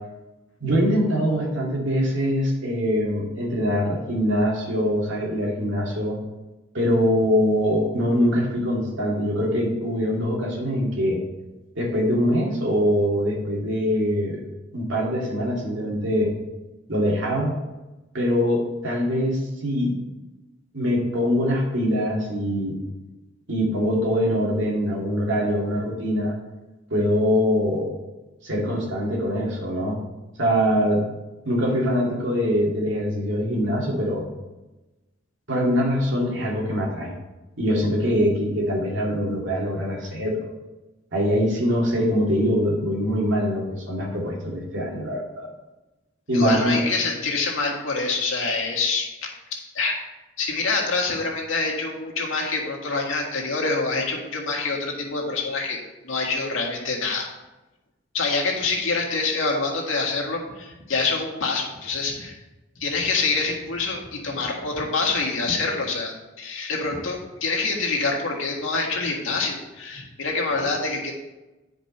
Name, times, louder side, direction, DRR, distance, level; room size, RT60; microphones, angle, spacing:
voice 1, 0.6-6.2 6.7-11.2 11.8-14.4 14.7-16.3 16.9-17.5 18.1-20.0 20.7-22.8 23.5-26.3 26.9-27.9 28.4-30.0 30.4-31.0 31.4-34.2 35.5-37.1 37.6-40.5 41.1-45.5 46.3-46.8, equal, 70° right, -2 dB, 2.4 m, -23 dB
voice 2, 46.3-49.9 50.4-55.8 56.0-57.3 58.1-62.4 62.8-71.1, left 3 dB, 90° left, 0 dB, 1.8 m, -26 dB
10.0 x 5.1 x 4.4 m, 1.1 s
head